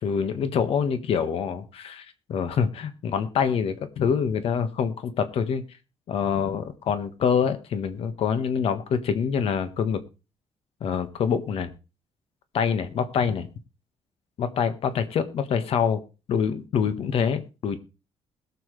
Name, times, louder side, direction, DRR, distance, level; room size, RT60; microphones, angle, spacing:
voice 1, 0.0-5.6 6.1-10.0 10.8-11.7 12.5-13.5 14.4-16.0 16.3-17.8, left 7 dB, 65° left, 10 dB, 1.5 m, -25 dB
21.0 x 7.2 x 3.3 m, 0.31 s
cardioid pair, 160°, 11 cm